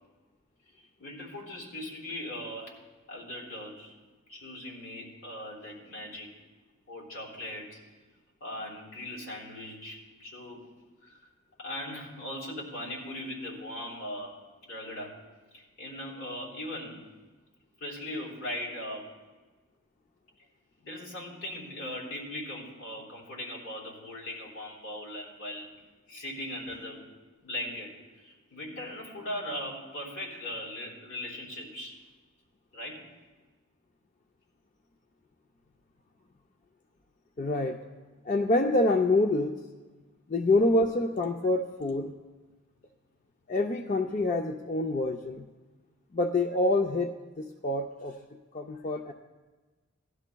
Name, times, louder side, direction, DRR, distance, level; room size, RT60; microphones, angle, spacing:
voice 1, 0.8-2.7 3.1-3.9 4.3-6.3 6.9-7.8 8.4-10.6 11.0-11.2 11.6-14.3 14.6-15.1 15.5-17.0 17.8-19.1 20.8-25.7 26.1-27.0 27.4-28.0 28.2-32.0 32.7-33.1, left 1 dB, 85° left, -4 dB, 3.6 m, -39 dB
voice 2, 37.4-37.8 38.2-39.6 40.3-42.1 43.5-45.5 46.1-47.1 47.4-48.1 48.5-49.1, left 2 dB, 35° left, 4 dB, 0.4 m, -26 dB
18.0 x 12.5 x 2.3 m, 1.3 s
head